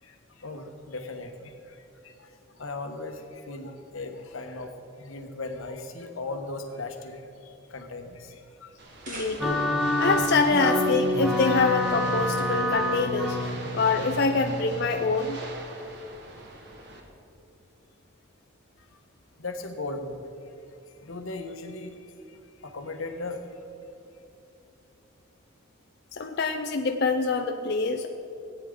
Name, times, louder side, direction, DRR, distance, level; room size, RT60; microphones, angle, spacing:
voice 1, 0.0-4.7 5.0-8.8 18.8-18.9 19.4-20.3 21.0-23.6, left 2 dB, 90° left, 5 dB, 1.1 m, -38 dB
sound 1, 8.7-9.9, right 1 dB, 40° right, 2.3 m, -42 dB
sound 2, 8.8-17.0, right 2 dB, 60° right, 1.4 m, -43 dB
voice 2, 9.1-9.6 10.0-13.4 13.7-15.4 26.1-28.1, left 4 dB, 55° left, 4 dB, 0.5 m, -25 dB
sound 3, 9.4-15.1, left 1 dB, ahead, 1.0 m, -27 dB
17.0 x 9.2 x 3.8 m, 2.7 s
head